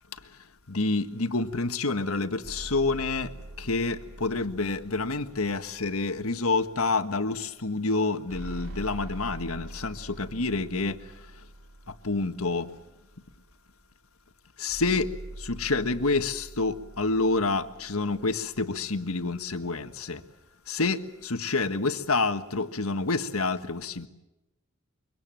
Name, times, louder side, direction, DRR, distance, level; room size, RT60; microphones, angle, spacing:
voice 1, 0.7-3.3 3.6-11.0 12.0-12.7 14.6-15.1 15.4-20.2 20.7-24.1, left 3 dB, 85° left, 1.6 m, -28 dB
sound 1, 2.4-6.9 8.3-13.1 14.7-19.0, right 1 dB, 75° right, 4.4 m, -44 dB
25.5 x 24.0 x 7.7 m
head